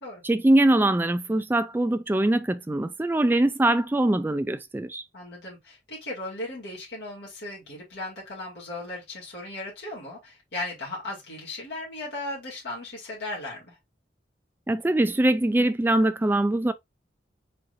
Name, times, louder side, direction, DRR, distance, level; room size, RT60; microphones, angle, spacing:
voice 1, 0.2-5.0 14.7-16.7, right 1 dB, 10° right, 0.3 m, -22 dB
voice 2, 5.1-13.7, left 2 dB, 65° left, 2.3 m, -37 dB
4.4 x 3.8 x 2.5 m
head